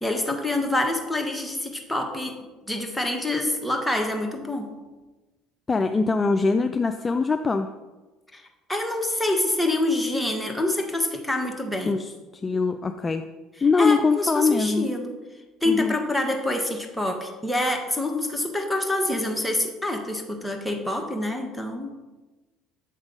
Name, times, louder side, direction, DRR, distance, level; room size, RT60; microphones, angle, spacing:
voice 1, 0.0-2.4 2.7-4.7 8.3-8.4 8.7-11.9 13.8-15.2 15.6-21.9, left 1 dB, 5° left, 2 dB, 1.3 m, -26 dB
voice 2, 5.7-7.7 11.9-13.3 13.6-14.9 15.7-15.9, left 4 dB, 25° left, 7 dB, 0.4 m, -23 dB
7.9 x 3.6 x 5.3 m, 1.2 s
hypercardioid pair, 75°, 0 cm